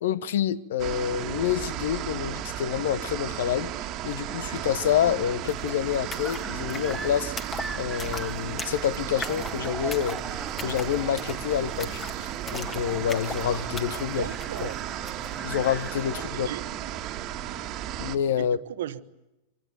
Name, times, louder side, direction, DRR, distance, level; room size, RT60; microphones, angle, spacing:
voice 1, 0.0-3.7 4.0-7.3 7.7-14.3 15.4-16.5 18.0-18.6, left 9 dB, 60° left, 0.9 m, -28 dB
sound 1, 0.8-18.2, right 12 dB, 35° right, 1.7 m, -34 dB
sound 2, 4.9-5.0 5.2-15.4, left 4 dB, 20° left, 2.0 m, -41 dB
sound 3, 6.0-16.3, right 2 dB, 5° right, 1.1 m, -42 dB
voice 2, 14.0-14.8 16.3-16.6 18.4-19.0, right 12 dB, 60° right, 1.2 m, -36 dB
25.5 x 24.5 x 9.4 m
figure-of-eight pair, 90°, 0 cm